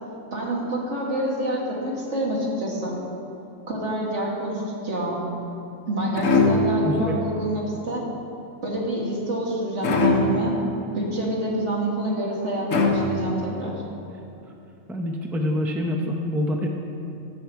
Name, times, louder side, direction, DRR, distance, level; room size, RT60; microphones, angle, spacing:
voice 1, 0.3-2.9 3.7-5.2 5.9-8.1 8.6-10.5 10.9-13.8, right 1 dB, 60° right, -3 dB, 2.2 m, -27 dB
sound 1, 6.2-7.0 9.8-10.6 12.7-13.5, left 3 dB, 70° left, 1.5 m, -21 dB
voice 2, 6.8-7.2 14.9-16.7, left 1 dB, ahead, 1 dB, 0.5 m, -26 dB
15.5 x 6.4 x 4.6 m, 2.8 s
omnidirectional pair, 1.4 m